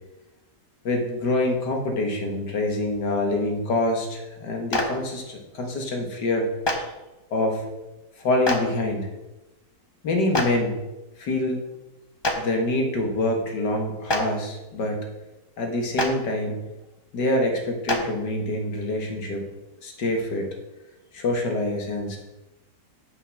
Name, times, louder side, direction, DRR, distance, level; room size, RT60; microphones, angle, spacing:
voice 1, 0.8-6.9 7.3-7.7 8.2-9.1 10.0-10.8 11.2-11.6 12.4-15.1 15.6-16.6 17.1-19.4 19.8-20.5 21.1-22.2, left 2 dB, 80° left, 2 dB, 2.2 m, -26 dB
Clapping, 4.7-4.8 6.6-6.7 8.4-8.6 10.3-10.4 12.2-12.3 14.0-14.2 15.9-16.1 17.9-18.0, left 1 dB, 20° left, 0.7 m, -23 dB
7.7 x 6.2 x 6.5 m, 1.0 s
omnidirectional pair, 1.8 m